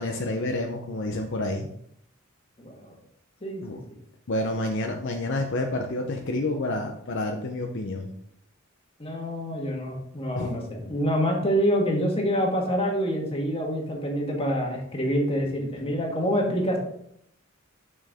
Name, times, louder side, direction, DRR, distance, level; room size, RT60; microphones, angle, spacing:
voice 1, 0.0-1.7 3.6-3.8 4.3-8.1 10.3-10.5, left 2 dB, 60° left, 3 dB, 0.7 m, -29 dB
voice 2, 2.6-3.0 3.4-3.8 9.0-16.8, equal, 30° left, 0 dB, 1.6 m, -26 dB
6.3 x 6.3 x 3.5 m, 0.70 s
head